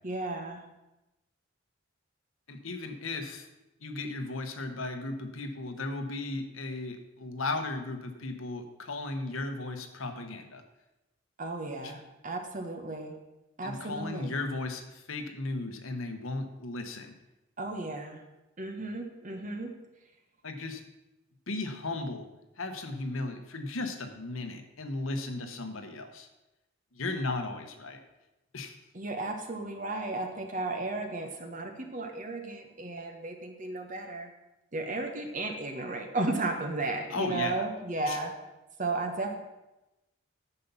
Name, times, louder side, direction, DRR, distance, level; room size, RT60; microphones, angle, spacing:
voice 1, 0.0-0.6 11.4-13.2 13.6-14.4 17.6-18.2 18.6-19.7 28.9-34.3 34.7-38.3 38.8-39.4, right 2 dB, 40° right, 4 dB, 1.2 m, -34 dB
voice 2, 2.5-3.5 3.8-10.6 11.8-11.9 13.6-17.1 20.4-20.8 21.5-22.3 22.6-26.3 26.9-28.0 28.5-28.8 37.1-37.6 38.1-38.2, left 2 dB, 75° left, 6 dB, 1.1 m, -35 dB
9.9 x 6.9 x 5.6 m, 0.98 s
head